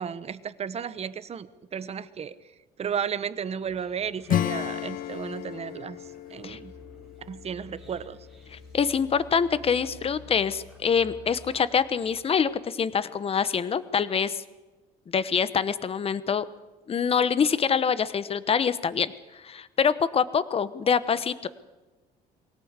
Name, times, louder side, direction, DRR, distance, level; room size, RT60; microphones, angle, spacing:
voice 1, 0.0-2.3 2.8-6.0 6.3-6.7 7.3-8.2, right 7 dB, 40° right, 14 dB, 1.1 m, -33 dB
sound 1, 3.6-12.9, left 3 dB, ahead, 3.9 m, -51 dB
Acoustic guitar / Strum, 4.3-8.6, left 11 dB, 55° left, 0.7 m, -33 dB
voice 2, 8.5-14.4 15.1-16.4 16.9-21.5, left 6 dB, 35° left, 15 dB, 1.1 m, -25 dB
23.0 x 17.5 x 8.2 m, 1.2 s
cardioid pair, 110°, 17 cm